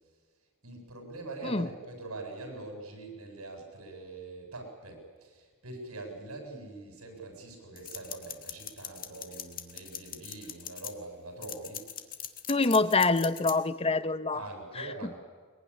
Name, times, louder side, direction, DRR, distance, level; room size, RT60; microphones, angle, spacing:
voice 1, 0.6-12.0 12.6-12.8 14.3-15.2, right 2 dB, 90° right, 3 dB, 7.5 m, -43 dB
sound 1, 7.8-10.9 11.4-13.6, left 10 dB, 45° left, 1.7 m, -40 dB
voice 2, 12.5-14.4 14.8-15.1, left 3 dB, 25° left, 14 dB, 0.8 m, -26 dB
22.5 x 22.0 x 10.0 m, 1.5 s
head